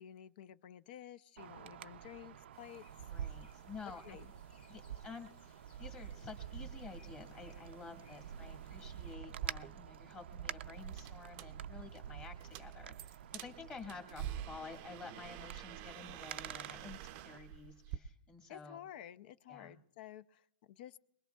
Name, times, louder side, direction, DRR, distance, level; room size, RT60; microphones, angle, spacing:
voice 1, 0.0-2.8 4.0-4.3 18.5-21.0, left 11 dB, 55° left, 16 dB, 0.5 m, -52 dB
Wind, 1.4-17.4, right 9 dB, 85° right, 0.5 m, -48 dB
sound 1, 2.5-9.2, left 5 dB, 80° left, 1.8 m, -67 dB
voice 2, 3.1-4.2 4.7-18.8 19.5-19.7, left 5 dB, 20° left, 4 dB, 1.6 m, -51 dB
sound 2, 9.3-18.0, right 11 dB, 35° right, 0.5 m, -48 dB
22.5 x 21.0 x 2.3 m, 0.81 s
supercardioid pair, 160°, 6 cm